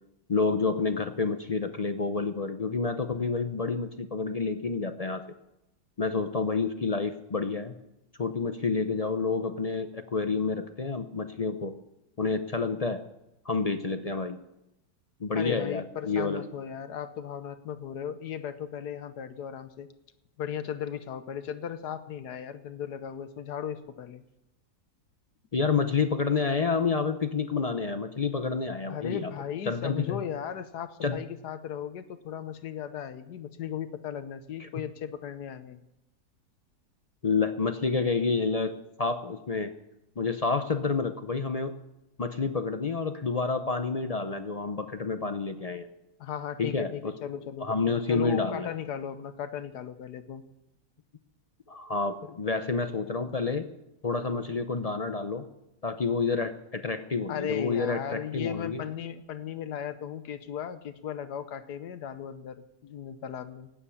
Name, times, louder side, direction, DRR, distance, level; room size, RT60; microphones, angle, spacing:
voice 1, 0.3-5.2 6.0-7.7 8.2-11.8 12.2-13.0 13.4-14.4 15.2-16.4 25.5-29.3 29.7-30.2 31.0-31.2 34.6-34.7 37.2-39.7 40.2-41.7 42.2-45.9 46.6-47.1 47.6-48.7 51.7-53.7 54.0-55.4 55.8-58.8, left 4 dB, 60° left, 8 dB, 0.4 m, -29 dB
voice 2, 15.3-19.9 20.4-24.2 28.9-35.8 46.2-47.7 48.1-50.4 57.3-63.7, left 9 dB, 75° left, 11 dB, 1.4 m, -36 dB
12.5 x 9.5 x 8.5 m, 0.89 s
omnidirectional pair, 1.8 m